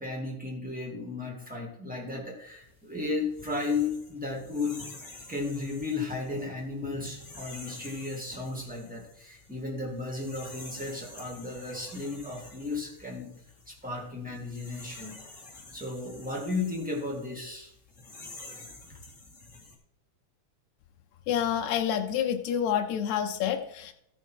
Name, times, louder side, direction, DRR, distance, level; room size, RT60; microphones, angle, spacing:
voice 1, 0.0-4.9 5.3-13.4 13.7-15.1 15.7-17.7, left 3 dB, 5° right, -2 dB, 1.6 m, -34 dB
sound 1, 2.5-19.8, left 3 dB, 25° left, 2.1 m, -49 dB
voice 2, 21.3-23.9, left 9 dB, 75° left, 4 dB, 1.8 m, -28 dB
14.0 x 5.6 x 4.6 m, 0.77 s
omnidirectional pair, 3.8 m